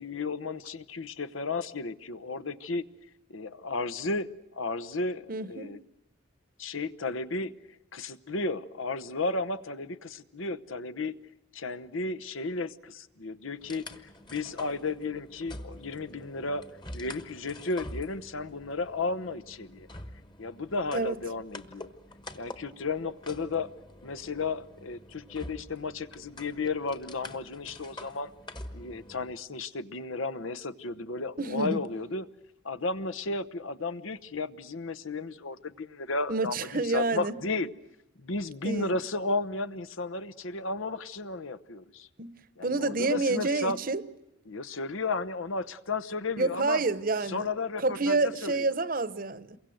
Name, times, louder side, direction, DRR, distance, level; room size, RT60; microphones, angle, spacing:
voice 1, 0.0-2.8 3.3-5.8 6.6-7.5 7.9-11.2 11.5-13.8 14.3-16.6 16.9-19.9 20.4-21.9 22.3-23.7 24.0-28.3 28.7-32.3 32.6-37.7 38.2-42.1 42.6-43.8 44.5-46.8 47.3-48.6, left 3 dB, 85° left, 1.0 m, -33 dB
voice 2, 5.3-5.7 20.9-21.2 31.4-31.8 36.3-37.4 38.6-38.9 42.2-44.0 46.4-47.5 47.8-49.6, right 3 dB, 45° right, 0.9 m, -28 dB
sound 1, 13.6-29.3, left 1 dB, 20° left, 1.3 m, -46 dB
28.0 x 23.0 x 7.8 m
head